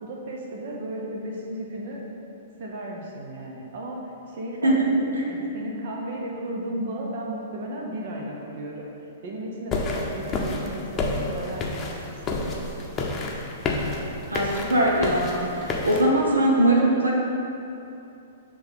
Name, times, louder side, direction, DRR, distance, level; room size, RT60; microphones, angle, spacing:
voice 1, 0.0-2.0 2.6-4.0 4.3-4.8 5.1-8.9 9.2-12.6, right 1 dB, 50° right, -1 dB, 0.9 m, -34 dB
sound 1, 9.7-16.1, left 2 dB, 25° left, 0.8 m, -29 dB
voice 2, 14.3-17.1, right 1 dB, 80° right, -2 dB, 0.9 m, -21 dB
7.2 x 3.4 x 5.2 m, 2.8 s
figure-of-eight pair, 110°, 0 cm